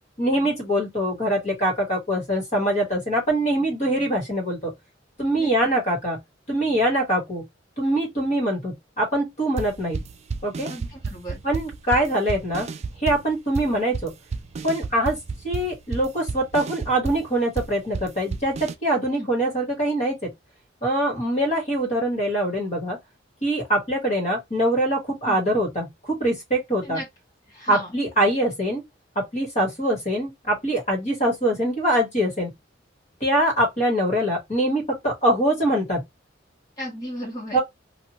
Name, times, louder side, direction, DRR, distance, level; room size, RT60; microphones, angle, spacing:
voice 1, 0.2-4.7 5.2-6.2 6.5-7.5 7.8-10.0 10.4-10.7 11.4-12.7 13.0-14.1 14.6-15.2 15.4-20.3 20.8-23.0 23.4-27.0 27.7-28.8 29.1-32.5 33.2-36.0 37.5-37.6, right 1 dB, 35° left, 1.4 m, -23 dB
sound 1, 9.6-18.7, right 4 dB, 35° right, 0.3 m, -32 dB
voice 2, 10.7-11.4 19.1-19.3 25.2-25.4 26.8-27.0 27.5-27.9 36.8-37.6, equal, 20° left, 1.3 m, -35 dB
2.9 x 2.4 x 2.9 m
head